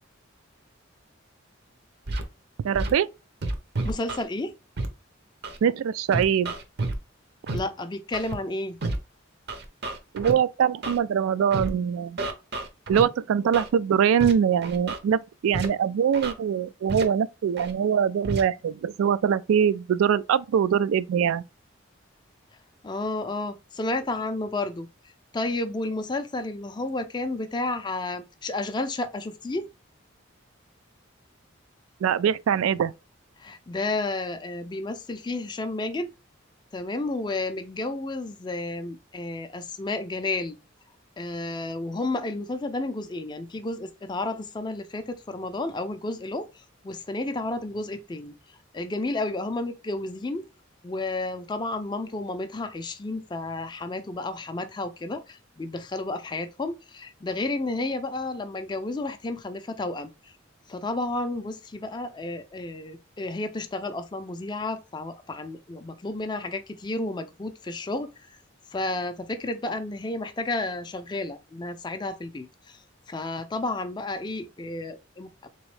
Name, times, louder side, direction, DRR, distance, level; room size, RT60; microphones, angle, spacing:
Scratching (performance technique), 2.1-2.2 2.7-2.9 3.4-4.2 4.8-4.9 5.4-5.6 6.1-7.0 7.5-7.6 8.1-8.3 8.8-9.0 9.5-10.3 10.8-11.0 11.5-11.7 12.2-13.0 13.5-13.7 14.2-14.3 14.6-15.0 15.5-15.7 16.1-16.3 16.9-17.0 17.6-17.7 18.2-18.4, right 2 dB, 50° right, 0.6 m, -30 dB
voice 1, 2.6-3.1 5.6-6.5 10.1-12.2 12.9-21.4 32.0-32.9, right 8 dB, 85° right, 0.3 m, -23 dB
voice 2, 3.8-4.5 7.5-8.8 22.8-24.9 25.3-29.7 33.4-36.1 36.7-40.6 41.2-48.3 48.7-50.5 50.8-60.3 60.7-68.4 68.7-72.8 73.1-75.5, left 2 dB, 20° left, 0.4 m, -31 dB
3.5 x 3.0 x 3.2 m
head